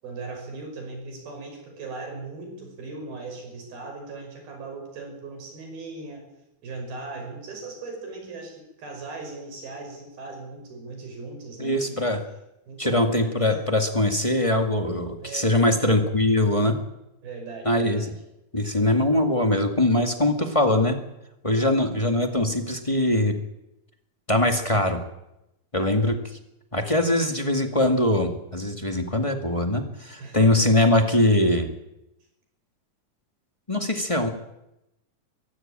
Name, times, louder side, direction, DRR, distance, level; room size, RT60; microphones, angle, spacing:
voice 1, 0.0-6.2 6.6-12.0 12.7-13.6 15.2-16.0 17.2-18.1 25.8-26.0 27.2-27.3 30.2-30.7, right 3 dB, 80° right, 3 dB, 7.7 m, -38 dB
voice 2, 11.6-12.2 12.8-16.8 17.6-18.1 18.5-21.0 21.4-23.4 24.3-25.0 25.7-26.2 26.7-31.7 33.7-34.3, left 1 dB, 20° left, 5 dB, 0.9 m, -22 dB
23.0 x 15.5 x 8.9 m, 0.88 s
omnidirectional pair, 4.2 m